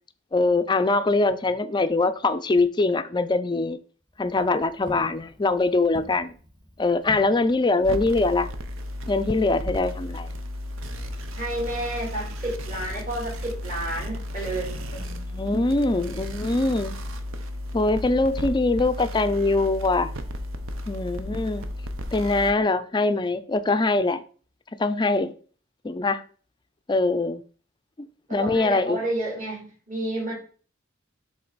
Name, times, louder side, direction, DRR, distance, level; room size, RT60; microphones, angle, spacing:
voice 1, 0.3-3.8 4.2-6.3 6.8-8.5 9.1-10.3 15.1-16.9 17.7-20.1 20.9-21.6 22.1-24.2 24.8-25.3 25.8-26.2 26.9-27.4 28.3-29.0, left 3 dB, 20° left, 0.4 m, -23 dB
Walk footsteps, 4.0-8.6, left 1 dB, 20° right, 1.3 m, -46 dB
sound 1, 7.8-22.5, left 1 dB, 75° right, 0.7 m, -34 dB
voice 2, 11.3-14.8 28.3-30.3, right 1 dB, 40° right, 3.0 m, -30 dB
7.6 x 3.8 x 4.0 m
head